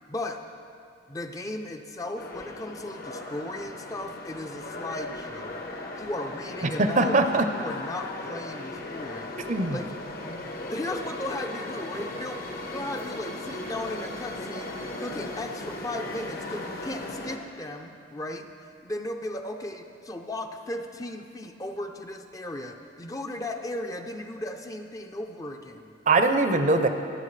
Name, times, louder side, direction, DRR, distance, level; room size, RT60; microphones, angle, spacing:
voice 1, 0.1-0.4 1.1-5.6 6.0-9.3 9.7-9.9 10.2-18.5 18.8-25.9, left 1 dB, 20° left, 4 dB, 0.5 m, -36 dB
sound 1, 2.2-17.4, left 2 dB, 50° left, 1.0 m, -37 dB
voice 2, 6.8-7.4 9.5-9.8 26.1-26.9, right 3 dB, 40° right, 7 dB, 0.6 m, -21 dB
23.5 x 8.1 x 3.3 m, 2.6 s
head